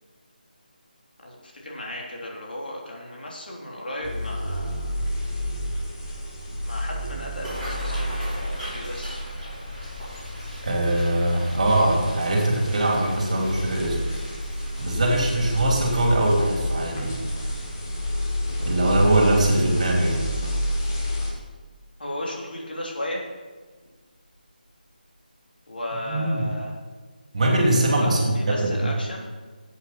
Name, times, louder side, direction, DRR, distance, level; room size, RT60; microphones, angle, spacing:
voice 1, 1.2-5.1 6.6-9.2 22.0-23.2 25.7-26.8 28.0-29.2, left 1 dB, 80° left, -2 dB, 3.4 m, -35 dB
sound 1, 4.0-21.3, equal, 25° left, 2.1 m, -30 dB
sound 2, 7.3-20.4 20.9-21.1 21.5-21.9 22.3-22.5 23.7-23.9 24.2-24.4 24.8-24.9, equal, 10° left, 4.5 m, -42 dB
voice 2, 10.6-14.0 14.8-17.2 18.6-20.3 26.0-26.5 27.3-28.9, right 1 dB, 45° right, 0 dB, 3.0 m, -22 dB
11.5 x 8.4 x 6.0 m, 1.4 s
figure-of-eight pair, 170°, 5 cm